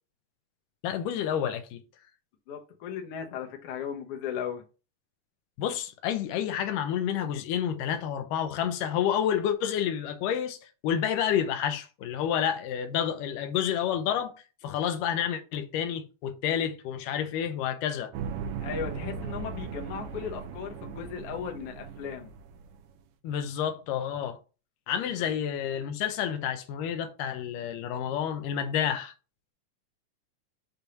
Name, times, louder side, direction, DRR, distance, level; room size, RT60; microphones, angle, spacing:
voice 1, 0.8-1.8 5.6-10.6 10.8-14.3 14.6-18.1 23.2-24.4 24.9-29.1, left 9 dB, 80° left, 2.3 m, -29 dB
voice 2, 2.5-4.6 18.6-22.3 25.2-25.3, left 7 dB, 60° left, 1.6 m, -36 dB
sound 1, 18.1-22.9, right 6 dB, 90° right, 2.4 m, -38 dB
6.8 x 2.7 x 5.6 m
omnidirectional pair, 3.8 m